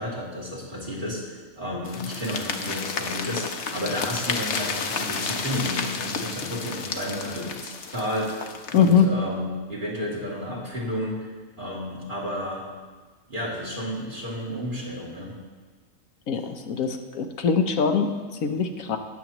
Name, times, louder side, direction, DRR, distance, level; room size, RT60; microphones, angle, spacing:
voice 1, 0.0-11.3 11.6-12.6 13.3-15.3, equal, 35° right, -6 dB, 2.6 m, -32 dB
sound 1, 1.9-9.0, left 5 dB, 60° left, 1.0 m, -31 dB
voice 2, 8.7-9.1 16.3-16.4 16.7-18.1 18.4-19.0, left 6 dB, 85° left, 6 dB, 1.2 m, -21 dB
19.5 x 7.2 x 3.0 m, 1.4 s
omnidirectional pair, 1.4 m